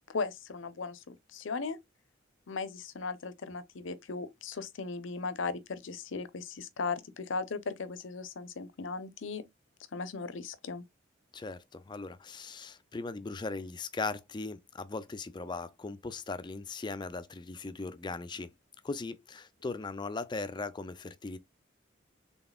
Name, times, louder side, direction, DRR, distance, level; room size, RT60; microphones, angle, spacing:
voice 1, 0.1-1.8 2.5-9.4 9.9-10.8, left 4 dB, 75° left, 0.6 m, -37 dB
voice 2, 11.3-18.5 18.8-21.4, left 3 dB, 25° left, 0.4 m, -38 dB
4.0 x 3.6 x 2.3 m
head